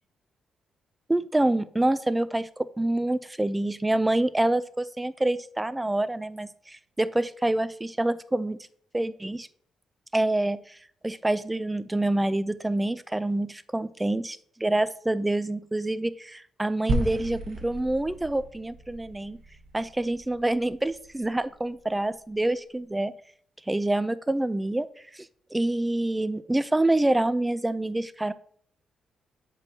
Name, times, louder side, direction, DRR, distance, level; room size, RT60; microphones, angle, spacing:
voice 1, 1.1-8.6 8.9-9.5 10.1-10.8 11.0-19.4 19.7-23.1 23.7-24.9 25.1-28.3, right 1 dB, 10° right, 14 dB, 0.3 m, -27 dB
sound 1, 16.9-21.3, right 1 dB, 60° right, 1.2 m, -34 dB
7.3 x 5.3 x 2.8 m, 0.62 s
cardioid pair, 80°, 0 cm